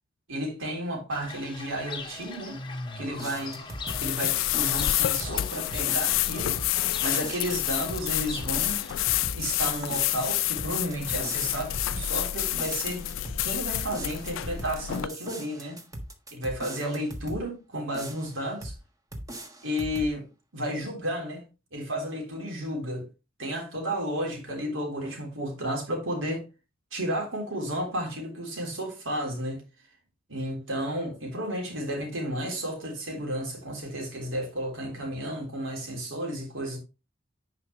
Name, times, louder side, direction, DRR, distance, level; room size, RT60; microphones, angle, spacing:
voice 1, 0.3-2.6 3.0-3.6 4.0-8.8 9.4-13.1 13.4-15.8 16.3-18.7 19.6-20.3 20.5-21.4 21.7-23.1 23.4-26.4 26.9-29.6 30.3-36.8, equal, 80° right, 3.5 m, -32 dB
Fowl / Bird, 1.1-9.0, left 4 dB, 25° left, 1.1 m, -41 dB
sound 1, 3.1-17.5 17.9-18.8 19.1-20.1, right 1 dB, 20° right, 1.3 m, -40 dB
sound 2, 3.9-15.1, left 14 dB, 75° left, 0.3 m, -28 dB
9.7 x 5.1 x 3.1 m
head